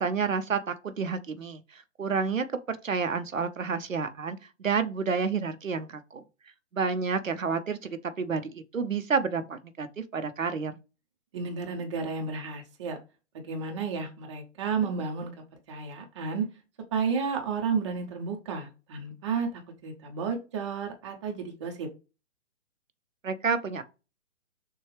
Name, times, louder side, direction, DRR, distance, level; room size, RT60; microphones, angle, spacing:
voice 1, 0.0-6.2 6.7-9.9 10.1-10.8 23.2-23.8, right 5 dB, 85° right, 0.6 m, -30 dB
voice 2, 11.3-13.0 13.5-15.3 15.7-16.5 16.9-21.9, right 5 dB, 25° right, 0.7 m, -32 dB
6.5 x 2.3 x 3.2 m
figure-of-eight pair, 130°, 38 cm